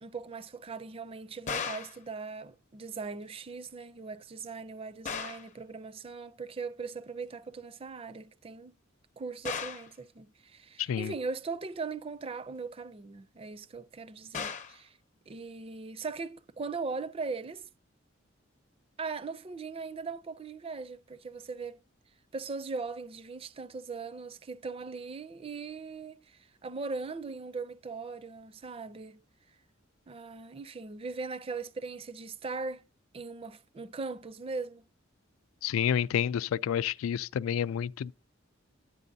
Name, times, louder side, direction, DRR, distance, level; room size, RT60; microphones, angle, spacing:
voice 1, 0.0-8.7 9.2-15.0 15.3-17.7 19.0-21.8 22.3-29.2 30.1-32.9 33.1-34.9, right 4 dB, 30° right, 0.4 m, -39 dB
sound 1, 1.5-2.0 5.1-5.5 9.5-9.9 14.3-14.8, left 6 dB, 35° left, 0.6 m, -36 dB
voice 2, 10.8-11.1 35.6-38.1, left 9 dB, 90° left, 0.3 m, -29 dB
9.9 x 8.4 x 2.6 m
head